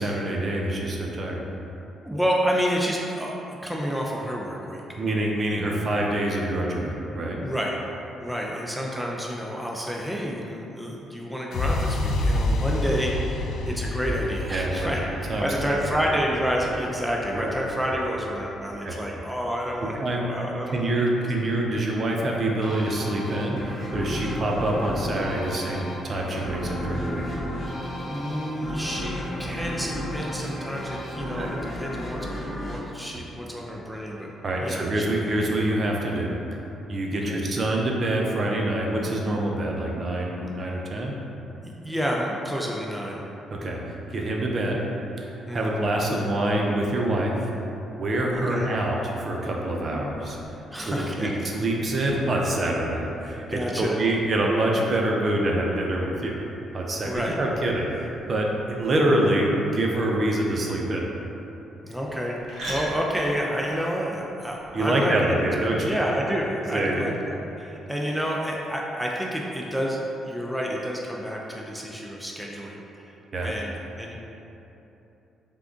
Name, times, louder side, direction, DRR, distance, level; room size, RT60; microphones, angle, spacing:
voice 1, 0.0-1.4 5.0-7.4 14.5-14.9 15.3-16.1 17.3-17.5 17.9-18.0 18.8-19.0 20.0-20.3 20.7-27.2 31.4-31.5 34.4-36.3 36.9-41.1 43.5-43.8 44.1-44.8 45.2-47.4 47.9-50.6 50.9-56.4 56.7-61.1 64.7-66.0 66.7-67.0 73.3-73.5, right 1 dB, 45° right, -1 dB, 0.6 m, -26 dB
voice 2, 2.0-5.0 5.6-5.7 7.4-7.7 8.2-20.9 28.1-32.3 32.6-34.3 34.6-34.9 37.1-37.4 41.6-43.2 45.5-45.7 48.3-48.7 50.7-51.5 53.5-54.0 57.0-57.4 61.8-65.4 65.7-70.0 70.3-73.2 73.4-74.2, equal, 5° right, -2 dB, 0.5 m, -29 dB
sound 1, 11.5-19.4, left 2 dB, 70° left, 0.3 m, -29 dB
sound 2, 22.6-33.8, equal, 35° left, 1.0 m, -33 dB
sound 3, 55.9-65.0, right 1 dB, 60° right, 1.4 m, -45 dB
3.7 x 3.4 x 3.7 m, 3.0 s
cardioid pair, 90°, 0 cm